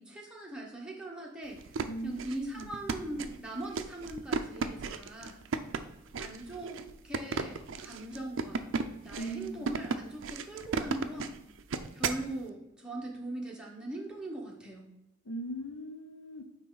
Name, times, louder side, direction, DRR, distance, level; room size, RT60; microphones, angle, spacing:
voice 1, 0.0-5.4 6.2-8.7 9.0-11.3 11.9-14.9, right 1 dB, 5° right, -3 dB, 1.1 m, -40 dB
sound 1, 1.5-12.3, right 4 dB, 65° right, 0.5 m, -35 dB
voice 2, 9.1-9.7 15.2-16.4, right 1 dB, 75° left, 4 dB, 0.7 m, -39 dB
9.3 x 3.2 x 3.9 m, 0.92 s
head